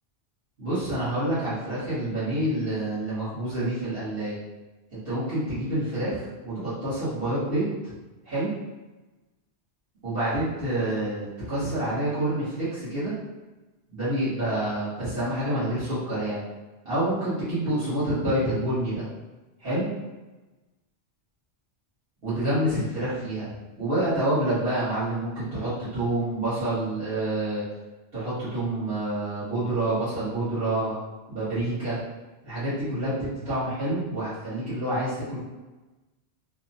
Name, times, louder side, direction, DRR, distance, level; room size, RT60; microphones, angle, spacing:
voice 1, 0.6-4.4 4.9-7.7 8.2-8.5 10.0-13.1 13.9-16.4 16.8-19.1 19.6-19.9 22.2-23.5 23.8-27.6 28.1-30.9 31.3-32.0 32.4-35.4, right 1 dB, 60° right, -14 dB, 1.3 m, -27 dB
3.0 x 2.0 x 2.6 m, 1.2 s
omnidirectional pair, 1.1 m